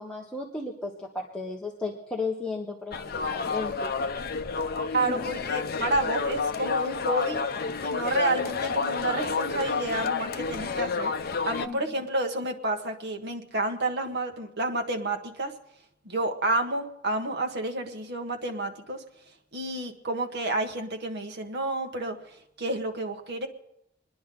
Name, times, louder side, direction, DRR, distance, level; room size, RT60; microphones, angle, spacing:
voice 1, 0.0-3.9 11.6-11.8, left 3 dB, 5° left, -2 dB, 1.2 m, -34 dB
sound 1, 2.9-11.7, left 5 dB, 50° left, 0.7 m, -30 dB
voice 2, 4.9-7.4 7.8-11.1 11.5-15.5 16.0-19.0 19.5-22.2 22.6-23.5, right 2 dB, 60° right, 4 dB, 1.4 m, -29 dB
27.0 x 10.5 x 3.8 m, 0.83 s
head